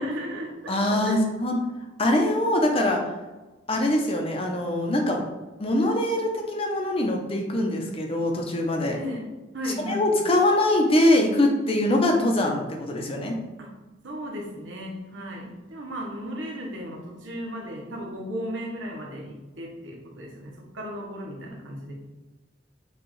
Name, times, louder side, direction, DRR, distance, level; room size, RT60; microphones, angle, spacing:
voice 1, 0.0-1.3 9.0-9.2 9.5-10.1 13.6-13.7 14.0-21.9, equal, 90° right, -1 dB, 1.0 m, -35 dB
voice 2, 0.7-1.6 2.0-3.0 3.7-5.2 5.6-9.0 9.9-13.4, left 1 dB, 30° left, 2 dB, 0.7 m, -23 dB
6.1 x 2.4 x 3.1 m, 1.1 s
head